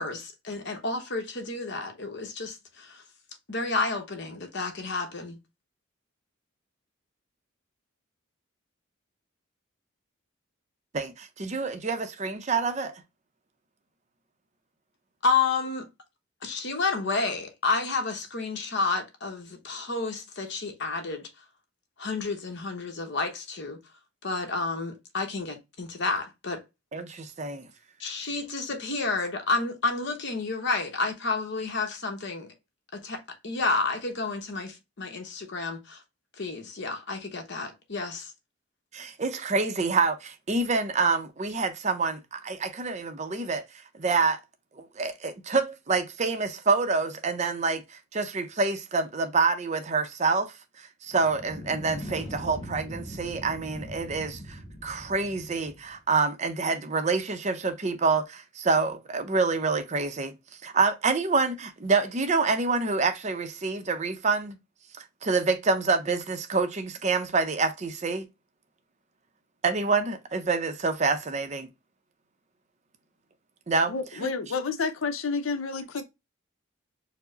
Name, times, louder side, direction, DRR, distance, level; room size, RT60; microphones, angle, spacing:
voice 1, 0.0-3.0 3.5-5.4 15.2-15.9 16.4-21.3 22.0-23.8 24.2-26.6 28.0-32.5 32.9-36.0 36.4-38.3, left 3 dB, 55° left, 1.0 m, -30 dB
voice 2, 10.9-12.9 26.9-27.6 38.9-43.6 44.0-44.4 44.8-47.8 48.1-60.3 60.6-64.6 65.0-68.3 69.6-71.7 73.7-73.9, right 4 dB, 35° right, 0.5 m, -27 dB
sound 1, 51.1-56.0, equal, 35° left, 1.3 m, -41 dB
voice 3, 73.9-76.0, left 4 dB, 75° left, 0.7 m, -30 dB
4.6 x 2.1 x 3.8 m
head